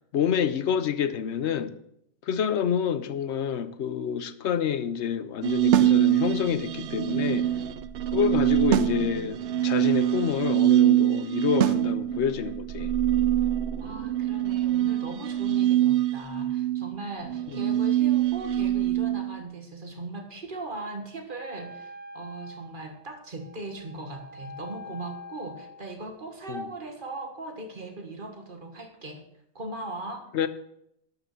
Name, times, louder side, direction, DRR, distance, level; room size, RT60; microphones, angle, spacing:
voice 1, 0.1-1.7 2.3-7.5 8.1-12.9 17.5-17.6 26.5-26.6 30.3-30.5, left 8 dB, 75° left, 1.0 m, -28 dB
sound 1, 5.4-19.4, right 12 dB, 65° right, 0.7 m, -24 dB
sound 2, 5.7-6.0 8.7-9.0 11.6-11.9, right 8 dB, 85° right, 1.0 m, -24 dB
voice 2, 13.8-29.2 29.6-30.3, right 2 dB, 45° right, 1.7 m, -39 dB
Wind instrument woodwind instrument, 21.4-25.9, left 2 dB, 10° right, 0.6 m, -45 dB
12.0 x 5.9 x 6.8 m
omnidirectional pair, 1.2 m